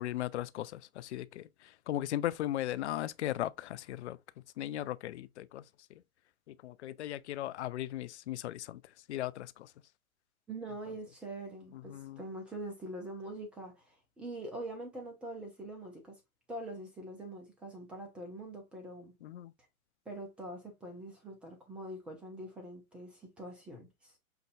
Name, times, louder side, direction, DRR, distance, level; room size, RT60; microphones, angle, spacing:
voice 1, 0.0-4.2 4.6-5.6 5.9-6.0 6.5-8.8 9.1-9.7 11.9-12.2 19.2-19.5, left 13 dB, 55° left, 0.5 m, -37 dB
voice 2, 10.5-16.2 16.5-19.1 20.1-24.1, right 1 dB, 5° right, 0.4 m, -44 dB
5.7 x 2.6 x 2.5 m
hypercardioid pair, 130°, 43 cm